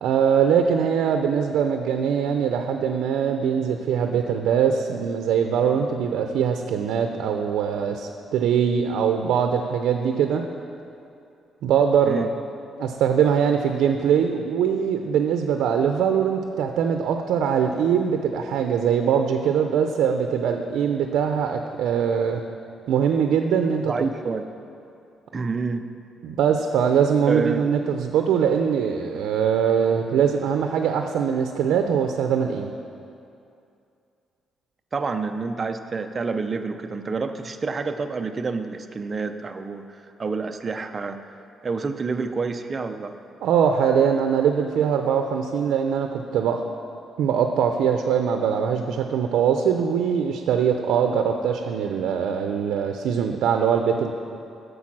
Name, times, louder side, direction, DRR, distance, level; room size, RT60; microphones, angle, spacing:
voice 1, 0.0-10.4 11.6-12.3 12.8-22.4 22.9-23.9 26.2-32.7 43.4-46.6 47.2-54.1, right 7 dB, 90° right, 5 dB, 0.5 m, -22 dB
voice 2, 23.8-24.5 25.3-25.9 27.3-27.7 34.9-41.2 41.6-43.1, right 4 dB, 25° right, 7 dB, 0.4 m, -28 dB
8.6 x 6.8 x 6.0 m, 2.6 s
cardioid pair, 170°, 0 cm